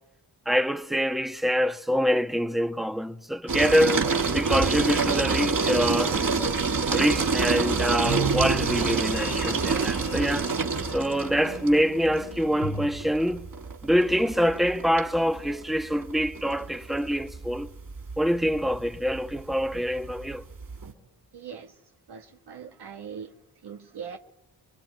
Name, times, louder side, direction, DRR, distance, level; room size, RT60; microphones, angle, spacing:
voice 1, 0.4-4.0 4.3-6.2 6.9-10.5 10.9-13.5 13.8-17.7 18.2-20.4, equal, ahead, 1.3 m, -25 dB
sound 1, 3.5-20.9, right 4 dB, 55° right, 3.6 m, -27 dB
sound 2, 5.6-12.9, right 2 dB, 70° left, 3.3 m, -36 dB
voice 2, 21.3-21.7 22.1-23.3 23.6-24.2, right 7 dB, 70° right, 1.5 m, -40 dB
27.0 x 22.0 x 9.4 m
cardioid pair, 50°, 41 cm